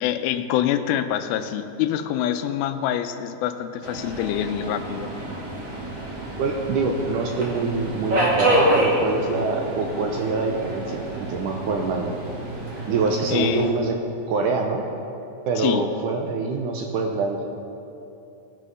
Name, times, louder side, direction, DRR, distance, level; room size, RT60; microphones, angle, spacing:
voice 1, 0.0-5.1 13.3-13.7 15.6-15.9, left 11 dB, 85° left, 9 dB, 2.5 m, -25 dB
Subway metro underground, 3.8-13.7, right 1 dB, 45° right, 2.7 m, -27 dB
voice 2, 6.4-12.2 12.9-14.0 14.3-14.9 15.5-17.4, right 4 dB, 75° right, 2 dB, 1.9 m, -25 dB
18.5 x 6.4 x 5.5 m, 2.8 s
omnidirectional pair, 4.3 m